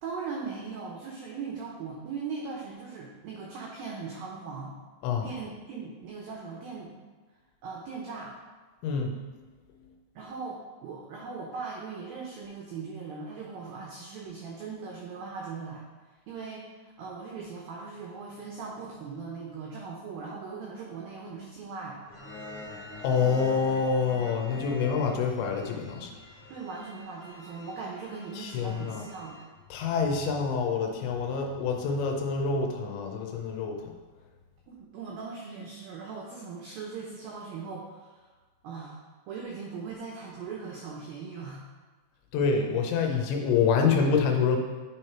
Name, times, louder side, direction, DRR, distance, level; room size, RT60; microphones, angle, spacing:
voice 1, 0.0-4.7 5.2-6.9 7.6-8.3 10.2-15.8 16.3-22.0 26.5-29.4 34.7-38.3 38.6-41.6, right 5 dB, 90° right, -2 dB, 2.0 m, -39 dB
voice 2, 8.8-9.1 23.0-26.1 28.4-29.0 29.7-33.8 42.3-44.6, left 5 dB, 80° left, 2 dB, 2.9 m, -26 dB
sound 1, 22.1-29.4, left 2 dB, 60° left, 2.5 m, -46 dB
9.5 x 3.3 x 4.4 m, 1.3 s
omnidirectional pair, 5.2 m